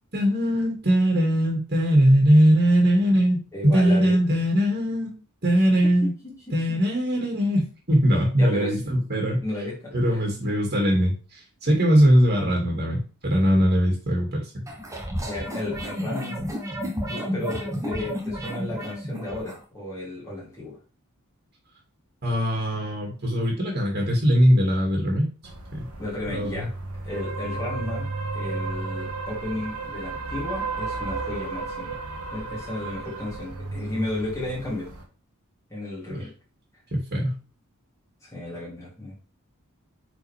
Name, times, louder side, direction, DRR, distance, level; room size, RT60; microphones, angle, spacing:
voice 1, 0.1-3.4 3.6-5.1 5.4-6.1 6.5-9.4 9.9-14.6 22.2-25.3 25.7-25.9 26.3-26.7 36.1-36.3 36.9-37.4, equal, 45° right, -1 dB, 2.3 m, -21 dB
voice 2, 3.5-4.1 6.2-6.6 8.4-8.8 9.4-10.2 15.2-16.5 17.1-20.8 26.0-32.0 32.3-34.9 35.7-36.3 38.2-39.1, left 1 dB, 15° left, -7 dB, 2.9 m, -33 dB
sound 1, 14.7-19.6, equal, 15° right, 1.3 m, -31 dB
sound 2, 25.4-35.0, right 3 dB, 80° right, 1.8 m, -33 dB
9.0 x 4.5 x 3.5 m, 0.37 s
head